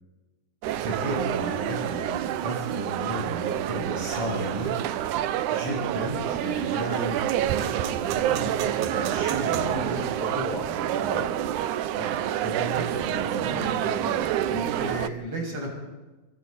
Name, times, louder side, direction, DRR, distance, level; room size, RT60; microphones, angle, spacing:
sound 1, 0.6-15.1, right 11 dB, 75° right, 1.9 m, -28 dB
voice 1, 0.8-10.3 11.3-11.4 11.8-13.7 14.5-15.7, right 1 dB, 35° right, -2 dB, 8.2 m, -34 dB
voice 2, 9.2-11.3 13.3-14.6, equal, 10° left, -1 dB, 5.2 m, -36 dB
29.0 x 28.0 x 4.3 m, 1.2 s
omnidirectional pair, 4.3 m